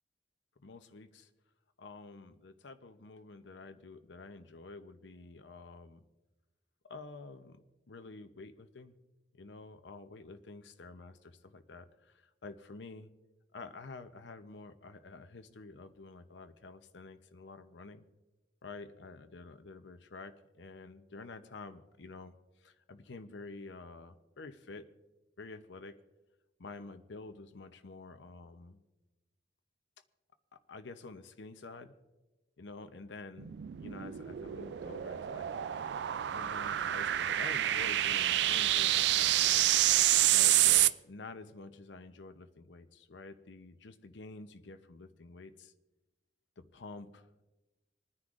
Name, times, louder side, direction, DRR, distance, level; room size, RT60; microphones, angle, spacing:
voice 1, 0.6-1.3 1.8-6.0 6.9-8.9 9.3-13.1 13.5-18.0 18.6-22.3 22.6-24.9 25.4-25.9 26.6-28.8 30.5-31.9 32.6-33.5 33.8-35.5 36.3-39.8 40.3-45.7 46.6-47.4, left 3 dB, 85° left, 9 dB, 0.7 m, -49 dB
sound 1, 33.4-40.9, right 13 dB, 70° right, 0.3 m, -28 dB
27.0 x 9.7 x 2.5 m, 1.1 s
head